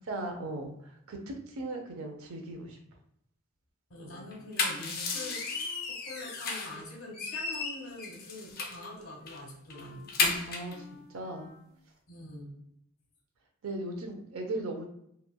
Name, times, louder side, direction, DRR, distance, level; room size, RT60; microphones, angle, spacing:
voice 1, 0.1-0.7 1.1-2.8 4.0-4.2 10.5-10.7 11.1-11.5 13.6-14.9, right 2 dB, 90° right, 3 dB, 0.6 m, -37 dB
voice 2, 3.9-10.1 12.1-12.5, left 1 dB, 85° left, 0 dB, 1.0 m, -45 dB
Wind instrument woodwind instrument, 4.1-7.0 7.2-11.7, left 2 dB, 30° left, 1.0 m, -55 dB
sound 1, 4.3-6.8 7.1-8.9 9.3-9.4 9.7-10.7, left 4 dB, 45° left, 0.5 m, -33 dB
3.0 x 2.2 x 2.2 m, 0.74 s
head